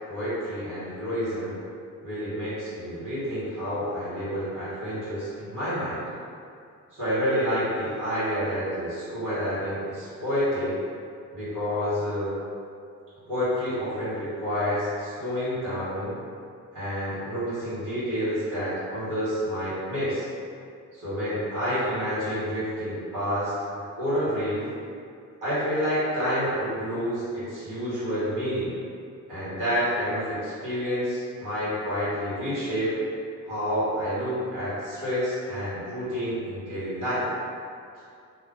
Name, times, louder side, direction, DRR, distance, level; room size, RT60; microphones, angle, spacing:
voice 1, 0.0-1.6 2.0-6.0 6.9-10.8 11.3-12.3 13.3-16.2 16.7-20.3 20.9-23.5 24.0-24.7 25.4-28.7 29.3-32.9 33.4-37.2, equal, 85° right, -12 dB, 1.5 m, -29 dB
2.6 x 2.0 x 3.8 m, 2.4 s
cardioid pair, 90°, 30 cm